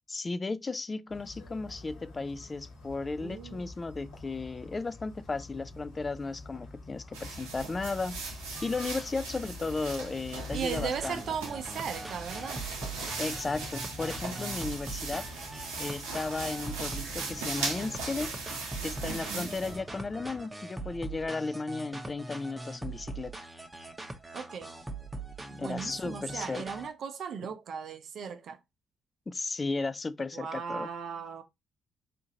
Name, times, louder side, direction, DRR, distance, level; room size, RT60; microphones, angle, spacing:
voice 1, 0.1-11.2 13.2-15.3 15.8-18.3 18.8-23.3 25.6-26.6 29.3-30.9, left 3 dB, 35° left, 0.3 m, -35 dB
sound 1, 1.1-20.4, left 2 dB, 85° left, 1.3 m, -48 dB
voice 2, 3.2-3.7 10.5-12.6 19.1-19.5 24.3-24.7 25.5-28.6 30.3-31.4, right 6 dB, 65° right, 0.6 m, -37 dB
sound 2, 7.1-19.8, right 3 dB, 90° right, 0.9 m, -39 dB
sound 3, 10.5-26.9, right 2 dB, 20° right, 0.8 m, -42 dB
3.7 x 2.5 x 2.7 m
hypercardioid pair, 50°, 0 cm